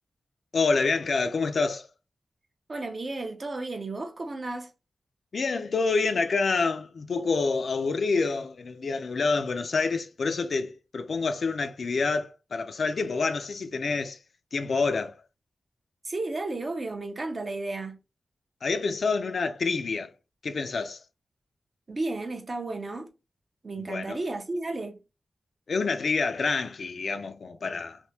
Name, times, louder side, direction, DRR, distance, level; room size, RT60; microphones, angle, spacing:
voice 1, 0.5-1.9 5.3-14.2 14.5-15.1 18.6-20.1 20.4-21.0 23.8-24.2 25.7-28.0, left 4 dB, 60° left, 0.4 m, -27 dB
voice 2, 2.7-4.7 16.0-18.0 21.9-23.1 23.6-25.0, right 2 dB, 40° right, 0.6 m, -33 dB
3.4 x 2.1 x 2.7 m
wide cardioid pair, 150°, 0 cm